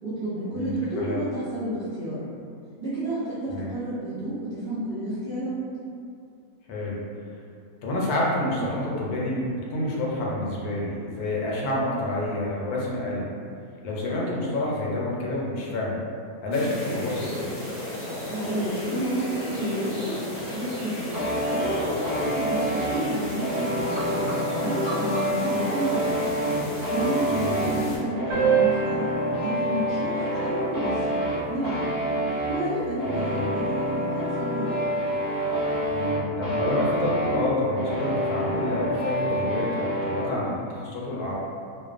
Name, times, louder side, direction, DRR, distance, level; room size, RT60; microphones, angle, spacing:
voice 1, 0.0-2.2 2.8-5.6 18.2-20.2 20.5-21.2 21.5-22.6 22.9-24.0 24.6-26.2 26.9-31.2 31.5-31.9 32.5-34.8, right 1 dB, 60° right, -14 dB, 0.5 m, -30 dB
voice 2, 0.5-1.2 3.5-3.8 6.7-7.0 7.8-13.3 13.8-16.0 16.4-17.6 27.3-27.7 33.0-33.5 35.9-41.4, left 1 dB, 80° left, -4 dB, 1.1 m, -28 dB
sound 1, 16.5-28.0, left 1 dB, 55° left, 0.4 m, -33 dB
sound 2, 21.1-40.3, equal, 10° right, 0.4 m, -28 dB
sound 3, 28.3-33.3, right 7 dB, 45° right, 1.0 m, -30 dB
2.5 x 2.2 x 2.3 m, 2.4 s
omnidirectional pair, 1.6 m